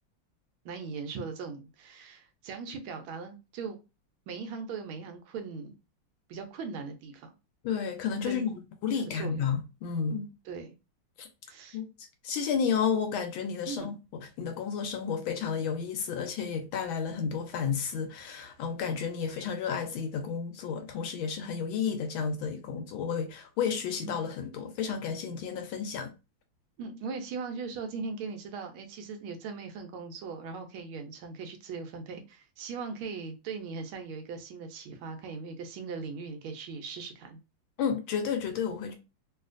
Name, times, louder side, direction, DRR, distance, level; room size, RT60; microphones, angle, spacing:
voice 1, 0.6-3.8 4.3-5.7 6.3-7.3 8.2-8.5 9.0-9.5 10.4-10.7 11.5-11.8 13.7-13.9 24.0-24.1 26.8-37.4, right 5 dB, 75° right, 1.4 m, -39 dB
voice 2, 7.6-8.5 8.8-10.3 11.2-11.3 11.7-11.9 12.2-26.1 37.8-38.9, left 6 dB, 75° left, 1.3 m, -32 dB
3.2 x 2.7 x 2.4 m
omnidirectional pair, 2.4 m